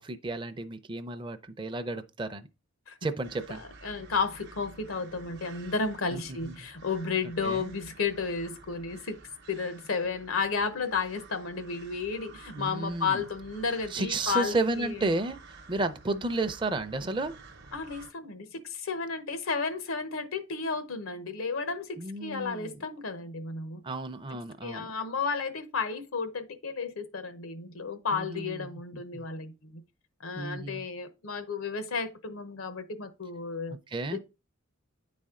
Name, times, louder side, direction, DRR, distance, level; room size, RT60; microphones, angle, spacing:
voice 1, 0.0-2.5 3.0-3.6 6.1-6.5 7.4-7.7 12.6-13.2 13.9-15.4 15.7-17.3 22.0-22.8 23.8-24.9 28.1-28.7 28.9-29.3 30.4-30.8 33.9-34.2, right 2 dB, 25° right, 0.4 m, -32 dB
sound 1, 3.2-18.1, right 3 dB, 55° right, 0.7 m, -52 dB
voice 2, 3.5-9.2 9.5-15.1 17.7-23.8 24.6-29.8 30.2-33.7 34.1-34.2, left 4 dB, 90° left, 0.9 m, -33 dB
9.4 x 4.2 x 3.7 m
head